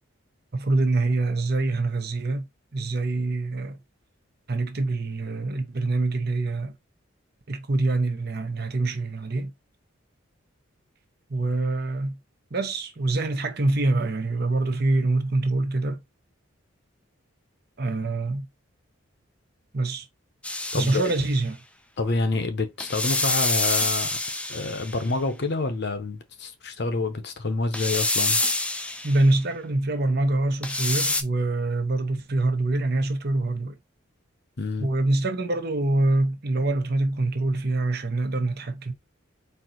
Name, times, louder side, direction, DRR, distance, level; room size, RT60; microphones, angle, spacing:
voice 1, 0.5-2.5 2.7-3.8 4.5-6.7 7.5-9.5 11.3-12.2 12.5-16.0 17.8-18.5 19.7-20.1 20.7-21.6 29.0-33.8 34.8-38.9, right 2 dB, 50° right, 0.8 m, -25 dB
sound 1, 20.4-21.3 22.8-25.1 27.7-29.2 30.6-31.2, left 2 dB, 5° left, 0.4 m, -26 dB
voice 2, 20.7-21.1 22.0-24.2 24.5-28.4 34.6-34.9, left 3 dB, 55° left, 0.8 m, -28 dB
4.5 x 2.7 x 3.8 m
head